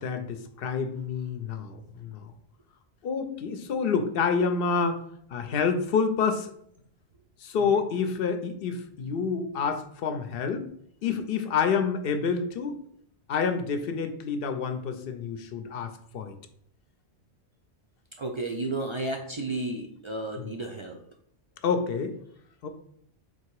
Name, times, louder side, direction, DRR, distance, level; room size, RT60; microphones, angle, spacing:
voice 1, 0.0-2.3 3.0-5.0 5.3-6.5 7.4-10.7 11.0-12.8 13.3-16.4 20.4-20.5 21.6-22.2 22.6-22.7, left 5 dB, 65° left, 9 dB, 0.7 m, -28 dB
voice 2, 18.2-21.0, right 2 dB, 45° right, 1 dB, 0.3 m, -32 dB
4.1 x 2.8 x 4.5 m, 0.66 s
omnidirectional pair, 1.1 m